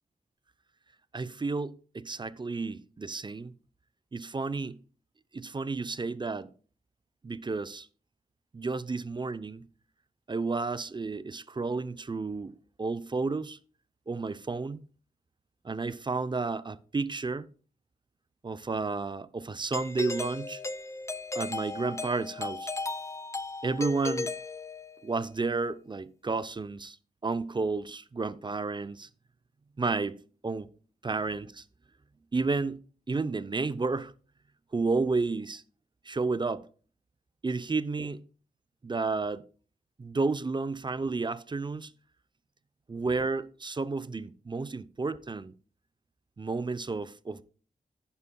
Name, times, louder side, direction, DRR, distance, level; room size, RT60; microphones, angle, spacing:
voice 1, 1.1-3.5 4.1-4.8 5.3-6.5 7.2-7.9 8.5-9.7 10.3-13.6 14.1-14.8 15.6-17.5 18.4-20.6 21.3-22.7 23.6-24.3 25.0-27.0 27.2-29.1 29.8-30.2 30.4-30.7 31.0-31.6 32.3-32.8 33.1-34.1 34.7-35.6 36.1-36.6 37.4-38.2 38.8-39.4 40.0-41.9 42.9-45.5 46.4-47.4, right 3 dB, 30° right, 0.6 m, -31 dB
Doorbell, 19.7-25.2, left 3 dB, 15° left, 0.5 m, -36 dB
11.0 x 9.6 x 2.2 m
cardioid pair, 60°, 17 cm